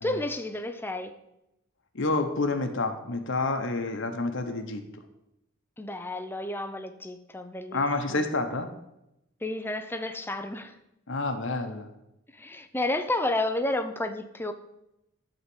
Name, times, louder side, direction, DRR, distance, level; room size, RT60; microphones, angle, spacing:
voice 1, 0.0-1.1 5.8-8.3 9.4-10.8 12.3-14.5, left 2 dB, 10° left, 8 dB, 0.6 m, -31 dB
voice 2, 1.9-4.8 7.7-8.7 11.1-11.9, left 3 dB, 60° left, 6 dB, 1.1 m, -28 dB
11.5 x 4.1 x 7.9 m, 0.87 s
head